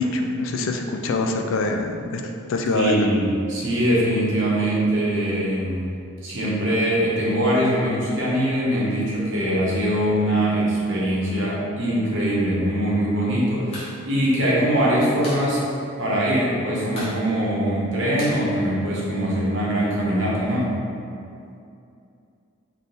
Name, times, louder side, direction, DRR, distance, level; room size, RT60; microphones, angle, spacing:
voice 1, 0.0-2.2 2.5-3.1, left 3 dB, 70° left, 3 dB, 0.3 m, -24 dB
voice 2, 2.7-5.9 6.2-15.6 16.0-20.7, right 1 dB, 60° right, -6 dB, 1.0 m, -22 dB
sound 1, 13.7-13.9 14.2-14.3 14.6-15.5 15.8-15.9 16.2-16.6 16.9-19.3, equal, 30° left, 0.9 m, -38 dB
3.7 x 2.7 x 3.8 m, 2.5 s
head